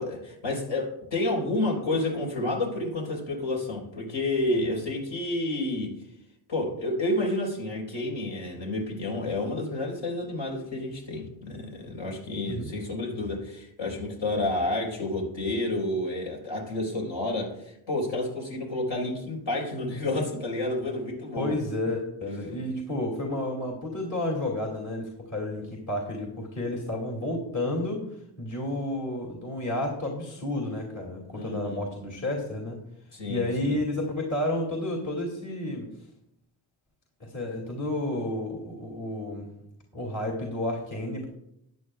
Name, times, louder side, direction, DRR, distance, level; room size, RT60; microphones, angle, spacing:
voice 1, 0.0-6.0 6.5-21.5 22.3-22.5 31.3-31.8 33.1-33.8, left 2 dB, 65° left, -2 dB, 4.1 m, -30 dB
voice 2, 21.4-28.1 28.4-32.8 33.3-35.9 37.2-39.5 39.9-41.3, left 1 dB, 40° left, -2 dB, 2.6 m, -31 dB
13.5 x 9.8 x 2.3 m, 0.78 s
supercardioid pair, 50°, 48 cm